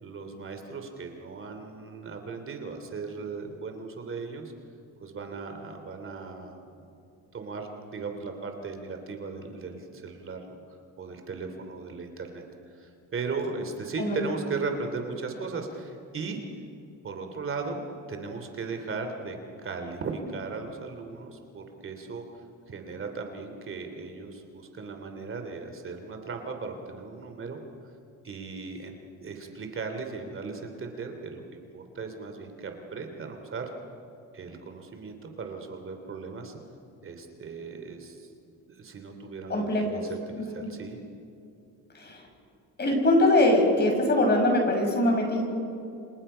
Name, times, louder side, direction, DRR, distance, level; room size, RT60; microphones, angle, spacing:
voice 1, 0.0-4.5 5.0-6.6 7.3-12.4 12.8-16.4 17.0-22.2 22.7-27.6 28.2-33.6 34.3-36.6 37.0-38.3 38.7-41.0, right 4 dB, 40° right, 5 dB, 3.0 m, -37 dB
voice 2, 39.5-40.0 40.4-40.7 41.9-42.2 42.8-45.4, left 1 dB, 30° left, 2 dB, 6.5 m, -23 dB
29.5 x 27.0 x 5.7 m, 2.6 s
cardioid pair, 120°, 32 cm